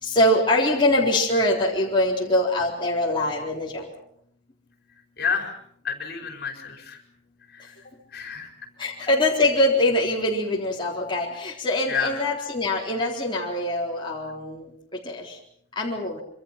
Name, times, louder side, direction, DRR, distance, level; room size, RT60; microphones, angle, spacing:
voice 1, 0.0-3.9 8.8-15.4 15.8-16.2, left 1 dB, 25° left, -3 dB, 4.0 m, -23 dB
voice 2, 5.2-5.5 5.8-7.0 7.5-7.7 8.1-8.5 11.9-12.2, left 6 dB, 55° left, 4 dB, 5.0 m, -29 dB
26.5 x 25.0 x 5.9 m, 0.66 s
head